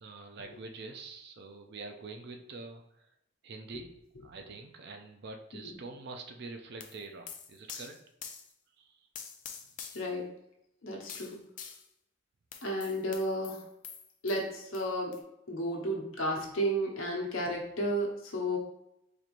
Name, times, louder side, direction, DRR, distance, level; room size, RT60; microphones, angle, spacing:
voice 1, 0.0-3.1 3.4-8.0 8.8-9.1, right 3 dB, 50° right, 4 dB, 0.4 m, -45 dB
sound 1, 6.8-8.5 9.1-10.1 11.1-11.9 12.5-14.4 14.7-14.9 15.1-15.2, left 7 dB, 35° left, 0.4 m, -45 dB
voice 2, 9.9-10.3 10.8-11.4 12.6-13.6 14.2-18.6, equal, 70° left, 0 dB, 0.9 m, -33 dB
4.3 x 3.1 x 2.5 m, 0.79 s
head